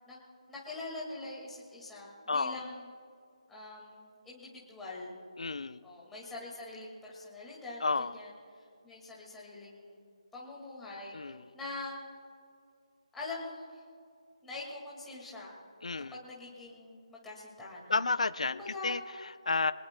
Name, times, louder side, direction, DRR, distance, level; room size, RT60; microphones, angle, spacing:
voice 1, 0.5-2.8 3.5-5.2 5.8-8.3 8.6-12.0 13.1-13.8 14.4-15.5 16.1-18.0 18.5-19.0, left 2 dB, 5° left, -6 dB, 1.9 m, -44 dB
voice 2, 2.3-2.7 5.4-5.8 7.8-8.2 11.1-11.5 15.8-16.2 17.9-19.7, left 4 dB, 70° left, 13 dB, 0.5 m, -32 dB
23.5 x 19.5 x 2.2 m, 2.4 s
hypercardioid pair, 175°, 4 cm